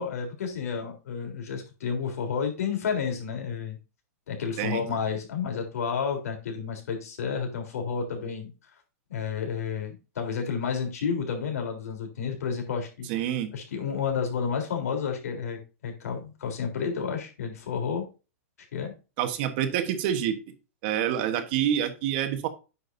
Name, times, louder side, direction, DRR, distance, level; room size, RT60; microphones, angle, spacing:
voice 1, 0.0-3.8 4.3-8.5 9.1-18.1 18.7-18.9, left 6 dB, 80° left, 4 dB, 3.8 m, -31 dB
voice 2, 13.1-13.5 19.2-20.4 20.8-22.5, right 10 dB, 40° right, 9 dB, 1.3 m, -27 dB
9.4 x 6.3 x 2.7 m, 0.30 s
supercardioid pair, 160°, 8 cm